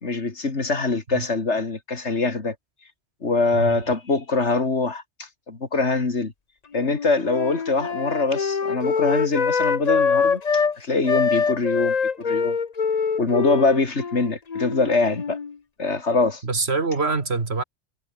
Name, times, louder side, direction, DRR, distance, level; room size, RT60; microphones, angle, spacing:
voice 1, 0.0-2.5 3.2-6.3 6.7-12.6 13.2-15.4 15.8-16.4, left 3 dB, 75° left, 3.0 m, -23 dB
Wind instrument woodwind instrument, 6.7-10.8 11.1-15.5, left 5 dB, 40° left, 1.0 m, -24 dB
voice 2, 16.4-17.6, right 4 dB, 65° right, 2.5 m, -24 dB
omnidirectional pair, 1.2 m